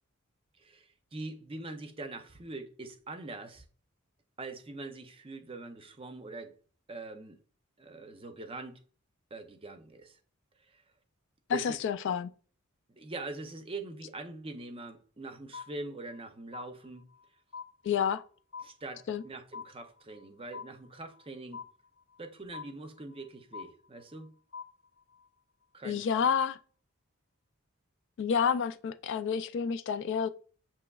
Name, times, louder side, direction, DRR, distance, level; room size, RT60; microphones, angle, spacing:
voice 1, 0.6-3.6 4.4-6.5 6.9-7.4 7.8-8.8 9.3-10.2 10.6-10.8 11.5-11.8 12.9-17.1 18.6-21.6 22.2-24.3 25.7-26.3, right 2 dB, 25° right, 0.6 m, -43 dB
voice 2, 11.5-12.3 17.8-18.2 19.1-19.2 25.8-26.6 28.2-30.3, left 7 dB, 60° left, 0.3 m, -29 dB
sound 1, 15.5-16.2 16.5-17.3 17.5-18.3 18.5-19.3 19.5-20.3 20.5-21.3 21.5-22.3 22.5-23.3 23.5-24.3 24.5-25.3, left 6 dB, 80° left, 0.9 m, -45 dB
7.0 x 2.9 x 2.3 m
head